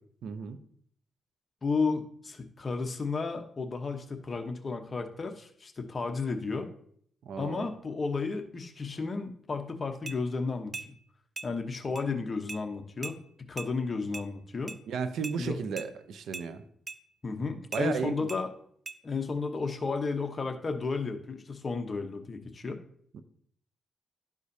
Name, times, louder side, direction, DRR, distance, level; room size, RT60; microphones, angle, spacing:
voice 1, 0.2-0.6 7.2-7.7 14.9-16.6 17.7-18.3 23.1-23.2, right 6 dB, 85° right, 10 dB, 0.6 m, -34 dB
voice 2, 1.6-6.7 7.4-10.9 11.4-14.8 15.4-15.6 17.2-18.5 19.0-22.8, left 4 dB, 35° left, 5 dB, 0.9 m, -33 dB
sound 1, 10.1-10.2 10.7-10.9 11.4-11.5 12.0-12.1 12.5-12.6 13.0-13.2 13.6-13.7 14.1-14.3 14.7-14.8 15.2-15.4 15.8-15.9 16.3-16.5 16.9-17.0 17.7-17.9 18.3-18.4 18.9-19.0, right 4 dB, 30° right, 0.5 m, -40 dB
12.0 x 4.9 x 2.7 m, 0.62 s
cardioid pair, 100°, 0 cm